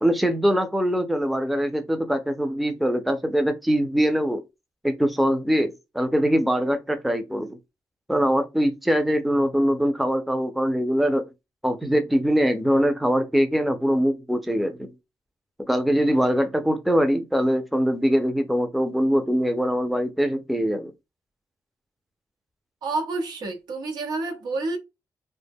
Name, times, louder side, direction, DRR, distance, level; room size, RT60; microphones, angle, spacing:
voice 1, 0.0-4.4 4.8-7.6 8.1-11.3 11.6-14.9 15.7-20.9, equal, ahead, 0.4 m, -22 dB
voice 2, 22.8-24.8, right 3 dB, 80° right, 0.8 m, -29 dB
2.1 x 2.1 x 3.4 m
cardioid pair, 105°, 7 cm